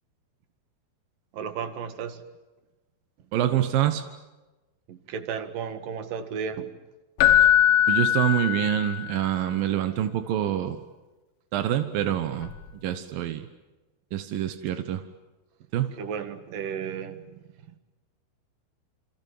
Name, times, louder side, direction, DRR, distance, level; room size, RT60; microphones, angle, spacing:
voice 1, 1.3-2.2 4.9-6.8 16.0-17.4, right 7 dB, 55° right, 10 dB, 2.9 m, -34 dB
voice 2, 3.3-4.0 7.4-7.5 7.9-10.8 11.5-12.5 12.8-13.5 14.1-15.1 15.7-15.9, right 11 dB, 70° right, 9 dB, 2.2 m, -26 dB
Keyboard (musical), 7.2-9.2 12.4-12.6, left 11 dB, 75° left, 3.8 m, -21 dB
29.0 x 27.0 x 7.6 m, 1.1 s
omnidirectional pair, 5.6 m